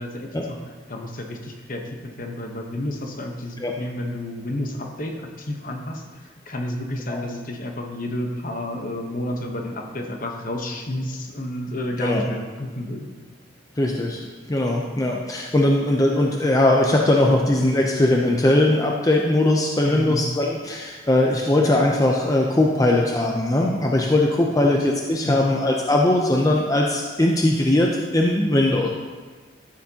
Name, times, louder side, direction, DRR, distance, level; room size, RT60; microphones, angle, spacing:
voice 1, 0.0-13.1 19.8-20.3 24.6-24.7 25.2-25.5, left 1 dB, 45° left, 2 dB, 1.0 m, -31 dB
voice 2, 13.8-14.2 14.5-28.9, left 1 dB, 20° left, 0 dB, 0.5 m, -20 dB
13.0 x 7.1 x 2.8 m, 1.5 s
head